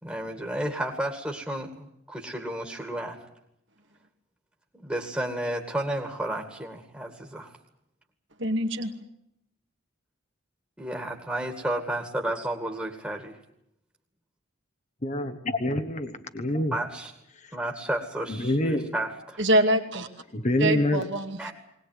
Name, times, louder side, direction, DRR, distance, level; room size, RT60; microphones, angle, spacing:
voice 1, 0.0-3.2 4.7-7.5 10.8-13.4 16.7-17.1 17.5-19.4 21.4-21.5, right 1 dB, 10° right, 2 dB, 2.2 m, -32 dB
voice 2, 8.4-8.9 19.4-20.1 20.6-21.5, right 1 dB, 60° right, 4 dB, 2.3 m, -24 dB
voice 3, 15.0-16.8 17.3-17.6 18.3-18.9 20.3-21.1, left 1 dB, 35° left, 7 dB, 1.2 m, -27 dB
21.0 x 19.5 x 9.4 m, 0.77 s
head